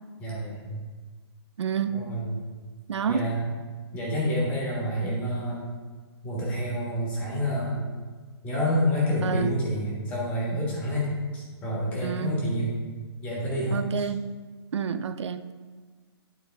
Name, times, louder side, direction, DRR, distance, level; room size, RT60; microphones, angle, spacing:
voice 1, 0.2-0.8 1.9-2.4 3.1-3.5 3.9-5.6 6.2-7.8 8.4-12.8 13.2-14.1, equal, 10° left, 1.3 m, -28 dB
voice 2, 1.6-2.1 2.9-3.2 9.2-9.5 12.0-12.4 13.7-14.3 14.7-15.5, right 7 dB, 90° right, 0.5 m, -28 dB
11.5 x 4.0 x 3.5 m
hypercardioid pair, 170°, 14 cm